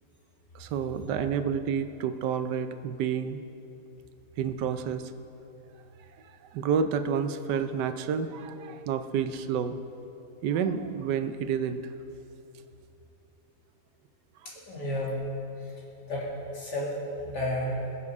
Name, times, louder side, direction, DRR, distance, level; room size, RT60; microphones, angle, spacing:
voice 1, 0.5-3.4 4.4-5.1 6.2-9.8 10.4-11.9, right 7 dB, 85° right, 9 dB, 1.3 m, -29 dB
voice 2, 14.4-15.2 15.6-15.7 16.1-16.9 17.2-17.8, left 1 dB, 80° left, -5 dB, 3.4 m, -32 dB
20.5 x 7.5 x 4.9 m, 2.7 s
omnidirectional pair, 1.8 m